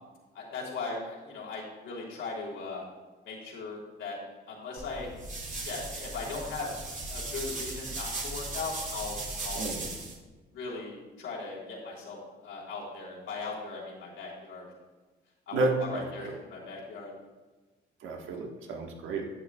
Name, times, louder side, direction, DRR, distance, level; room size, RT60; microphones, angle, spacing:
voice 1, 0.3-2.8 3.2-4.2 4.5-5.1 5.6-9.2 9.4-9.6 10.5-14.7 15.5-17.1, left 3 dB, 80° left, -4 dB, 3.1 m, -38 dB
sound 1, 4.8-10.2, right 2 dB, 40° right, 2.1 m, -37 dB
voice 2, 9.5-9.9 15.5-16.3 18.0-19.3, right 2 dB, 80° right, 1 dB, 1.5 m, -31 dB
11.5 x 8.8 x 2.4 m, 1.3 s
cardioid pair, 90°, 20 cm